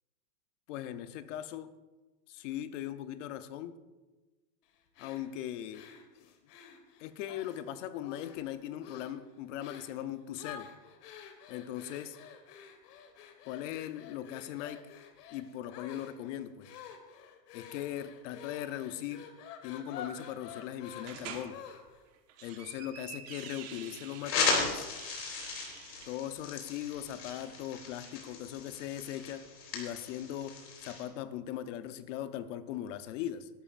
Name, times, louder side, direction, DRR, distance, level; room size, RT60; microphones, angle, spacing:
voice 1, 0.7-1.7 2.3-3.8 5.0-5.9 6.2-6.3 7.0-10.7 11.5-12.2 13.4-14.9 15.3-16.7 17.5-19.4 19.6-21.6 22.4-24.9 26.1-29.5 29.7-33.5, left 11 dB, 45° left, 11 dB, 0.8 m, -39 dB
sound 1, 4.9-7.6 8.0-8.5 8.8-9.2 9.6-10.0 10.4-22.0, left 7 dB, 65° left, 1.8 m, -49 dB
sound 2, 21.0-21.5 22.1-24.4 24.8-26.1, right 8 dB, 30° right, 1.4 m, -47 dB
sound 3, 24.2-31.0, left 4 dB, 90° left, 4.3 m, -36 dB
18.5 x 12.5 x 2.5 m, 1.2 s
supercardioid pair, 155°, 50 cm